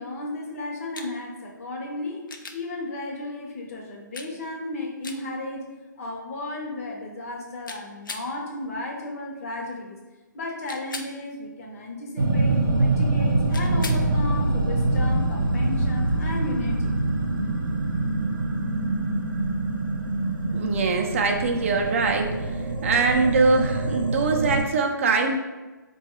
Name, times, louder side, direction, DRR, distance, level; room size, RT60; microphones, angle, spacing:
voice 1, 0.0-2.2 2.5-10.0 10.3-16.9, left 2 dB, 45° left, 0 dB, 0.7 m, -34 dB
sound 1, 0.9-1.1 2.3-2.6 4.1-4.3 5.0-5.2 7.7-8.3 10.7-11.1 13.5-14.1 16.3-16.4, left 4 dB, 80° left, 0.4 m, -37 dB
sound 2, 12.2-24.6, right 2 dB, 90° right, 0.6 m, -25 dB
voice 2, 20.5-22.5 22.8-25.4, right 4 dB, 40° right, 3 dB, 0.4 m, -23 dB
3.8 x 2.3 x 2.9 m, 1.2 s
hypercardioid pair, 150°, 11 cm